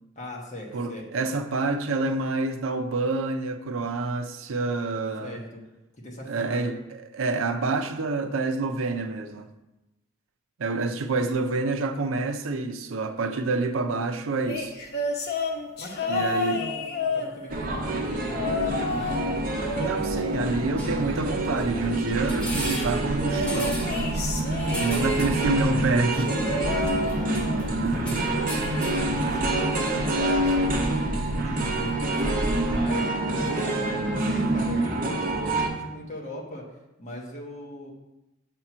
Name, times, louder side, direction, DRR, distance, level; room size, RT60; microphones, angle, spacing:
voice 1, 0.2-1.2 5.2-5.6 6.0-6.8 15.8-19.3 26.7-28.2 28.5-31.9 32.6-36.6 37.0-37.9, equal, 35° left, -2 dB, 1.3 m, -39 dB
voice 2, 0.7-5.4 6.3-9.5 10.6-14.7 16.1-16.6 19.8-23.8 24.8-26.5 27.8-28.0, right 3 dB, 75° right, 6 dB, 0.5 m, -27 dB
sound 1, 14.4-17.8 18.3-19.3 19.6-21.1 23.2-25.4 26.2-27.7 28.1-28.4 29.6-29.7, left 2 dB, 50° left, 0.8 m, -31 dB
sound 2, 17.5-35.7, right 2 dB, 40° right, 0.7 m, -27 dB
sound 3, 20.8-32.9, equal, 5° left, 1.1 m, -35 dB
7.5 x 2.9 x 5.9 m, 0.96 s
head